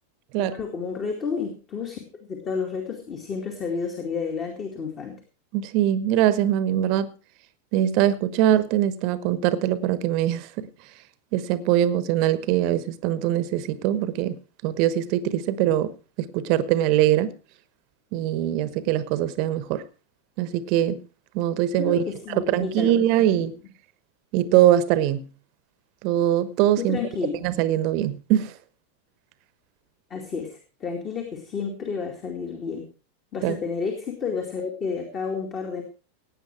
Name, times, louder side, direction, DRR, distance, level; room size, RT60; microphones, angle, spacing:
voice 1, 0.4-5.1 21.8-23.4 26.8-27.4 30.1-32.9 33.3-35.8, left 5 dB, 30° left, 2.5 m, -31 dB
voice 2, 5.5-7.1 7.7-10.7 11.3-17.3 18.1-19.9 20.4-21.0 21.3-23.6 24.3-25.3 26.0-27.0 27.4-28.5 33.4-33.6, right 12 dB, 45° right, 1.1 m, -22 dB
17.5 x 9.1 x 4.7 m
figure-of-eight pair, 90°, 0 cm